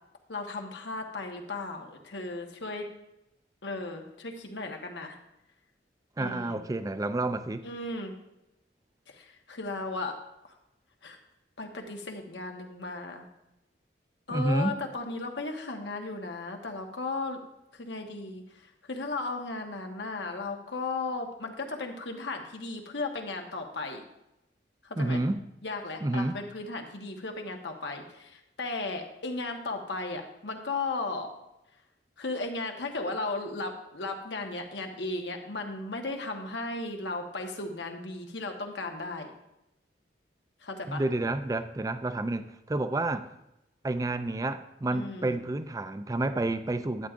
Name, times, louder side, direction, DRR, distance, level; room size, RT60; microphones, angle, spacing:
voice 1, 0.3-2.9 3.6-5.2 6.2-6.6 7.6-8.1 9.1-10.2 11.0-11.2 11.6-13.3 14.3-17.4 17.7-24.0 24.8-25.2 25.6-31.3 32.2-39.3 40.6-41.0 44.9-45.4, left 3 dB, 80° left, 1.2 m, -35 dB
voice 2, 6.2-7.7 14.3-14.8 25.0-25.4 26.0-26.4 40.9-43.3 43.8-47.1, right 2 dB, 20° right, 0.4 m, -29 dB
11.5 x 8.7 x 2.5 m
head